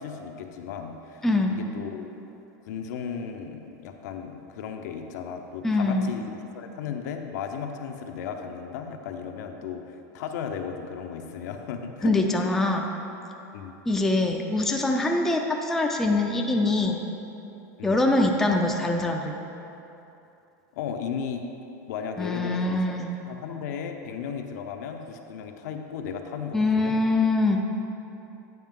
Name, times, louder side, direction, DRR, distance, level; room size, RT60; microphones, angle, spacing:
voice 1, 0.0-2.1 2.7-12.5 13.5-13.7 17.8-18.0 20.7-21.5 21.9-22.8 23.3-27.0, left 7 dB, 75° left, 4 dB, 0.6 m, -35 dB
voice 2, 1.2-1.6 5.6-6.1 12.0-12.9 13.9-17.0 17.8-19.3 22.2-23.2 26.5-27.6, left 2 dB, 5° left, 1 dB, 0.4 m, -23 dB
9.2 x 5.2 x 3.7 m, 2.9 s
supercardioid pair, 155°, 10 cm